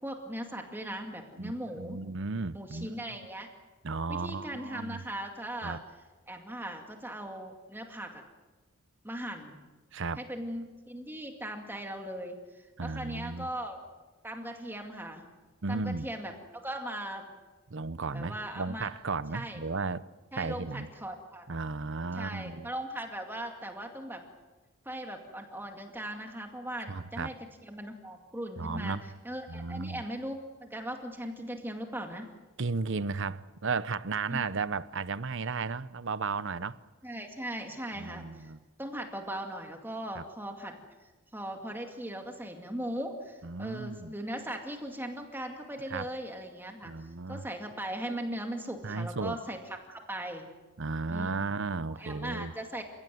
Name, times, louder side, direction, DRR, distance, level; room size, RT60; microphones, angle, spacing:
voice 1, 0.0-2.0 2.5-3.5 4.1-5.8 6.3-8.2 9.0-9.6 10.2-13.8 14.2-15.2 15.7-16.3 16.6-17.3 18.1-18.9 19.3-19.6 20.3-21.5 22.1-24.2 24.9-27.3 27.6-29.0 29.2-32.3 34.3-34.4 37.0-38.5 38.8-46.9 47.3-49.6 49.9-50.5 51.1-51.4 52.0-52.8, right 1 dB, 10° right, 2.2 m, -39 dB
voice 2, 1.4-2.9 3.8-5.0 5.6-5.8 9.9-10.2 12.8-13.5 15.6-16.1 17.7-20.0 20.4-20.9 21.5-22.7 26.9-27.4 28.6-29.0 29.5-30.0 32.6-36.8 38.0-38.6 40.2-40.3 43.4-44.1 45.9-46.1 46.8-47.5 48.8-49.4 50.8-52.5, right 4 dB, 55° right, 0.8 m, -34 dB
28.5 x 17.0 x 9.4 m
head